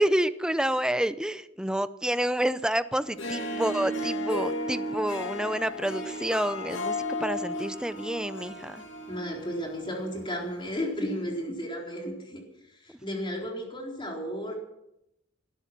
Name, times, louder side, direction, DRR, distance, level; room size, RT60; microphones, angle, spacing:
voice 1, 0.0-8.8, right 1 dB, 5° right, 13 dB, 0.6 m, -28 dB
Harp, 3.0-10.5, left 1 dB, 65° left, 2.3 m, -34 dB
voice 2, 9.1-12.4 12.8-14.6, equal, 25° left, 0 dB, 4.1 m, -33 dB
18.0 x 13.0 x 6.0 m, 0.84 s
head